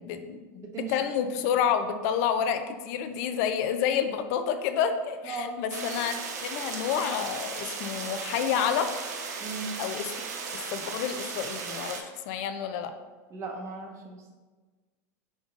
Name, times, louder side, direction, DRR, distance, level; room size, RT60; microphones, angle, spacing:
voice 1, 0.0-0.4 0.8-6.1 6.4-8.9 9.8-10.1 10.5-12.9, left 8 dB, 60° left, 8 dB, 0.4 m, -29 dB
voice 2, 0.6-0.9 5.2-5.6 9.4-9.7 13.3-14.3, right 4 dB, 35° right, 1 dB, 0.8 m, -37 dB
sound 1, 5.7-12.0, right 5 dB, 80° right, 0.6 m, -36 dB
5.0 x 3.7 x 2.4 m, 1.3 s
hypercardioid pair, 105°, 9 cm